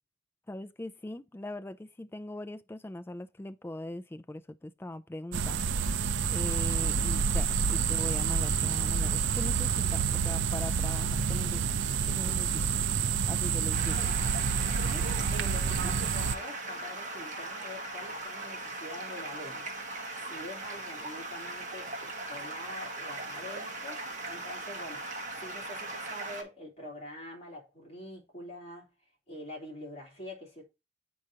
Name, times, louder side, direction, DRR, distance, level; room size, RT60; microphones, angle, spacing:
voice 1, 0.5-5.9 6.3-11.6 12.1-12.7 13.3-14.1, left 1 dB, 10° left, 0.4 m, -41 dB
sound 1, 5.3-16.3, right 6 dB, 70° right, 0.5 m, -28 dB
Stream, 13.7-26.4, right 2 dB, 40° right, 1.5 m, -39 dB
voice 2, 14.8-19.7 20.3-28.9 29.3-30.6, left 1 dB, 35° left, 2.8 m, -45 dB
7.8 x 5.0 x 2.7 m
head